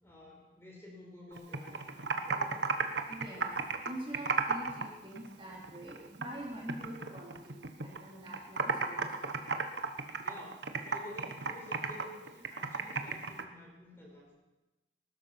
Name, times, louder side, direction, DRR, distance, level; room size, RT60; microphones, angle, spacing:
voice 1, 0.0-2.7 10.2-14.3, left 1 dB, 15° left, -2 dB, 4.6 m, -51 dB
Computer keyboard, 1.3-4.9 5.2-6.4 6.7-8.0 8.3-13.4, right 4 dB, 80° right, 1.3 m, -34 dB
voice 2, 3.1-3.5 3.8-9.1, right 1 dB, 30° right, -3 dB, 3.4 m, -45 dB
20.0 x 12.0 x 5.9 m, 1.1 s
head